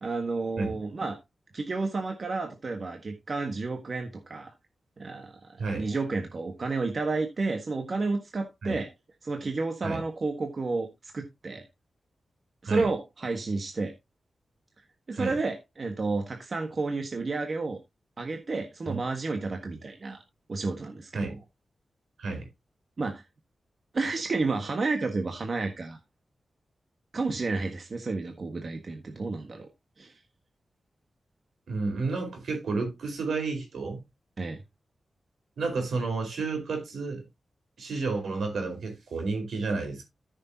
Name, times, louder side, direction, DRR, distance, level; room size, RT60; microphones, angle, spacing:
voice 1, 0.0-1.2 1.5-4.5 5.0-8.9 9.2-11.6 12.6-13.9 15.1-17.8 18.2-20.2 20.5-21.3 23.0-23.2 23.9-26.0 27.1-29.7 30.0-30.2 34.4-34.6, right 3 dB, 45° right, 1.5 m, -31 dB
voice 2, 5.6-5.9 8.6-8.8 9.8-10.0 12.6-12.9 15.1-15.4 18.9-19.0 19.7-19.8 21.1-21.4 22.2-22.5 31.7-34.0 35.6-37.2 37.8-40.0, right 3 dB, 85° right, 4.6 m, -31 dB
13.5 x 6.7 x 2.8 m
wide cardioid pair, 100°, 0 cm